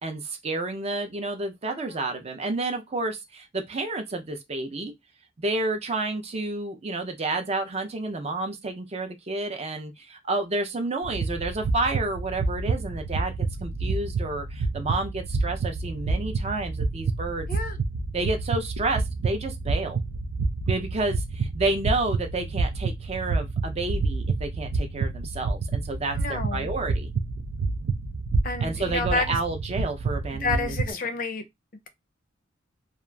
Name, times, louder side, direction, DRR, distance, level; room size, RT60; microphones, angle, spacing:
voice 1, 0.0-4.9 5.4-13.3 13.6-17.5 18.1-20.0 20.7-27.1 28.6-31.0, right 2 dB, 35° right, 0.5 m, -30 dB
sound 1, 11.0-30.9, right 3 dB, 90° right, 0.4 m, -28 dB
voice 2, 26.2-26.7 28.4-29.3 30.4-31.4, left 3 dB, 45° left, 0.5 m, -29 dB
2.7 x 2.4 x 2.2 m
head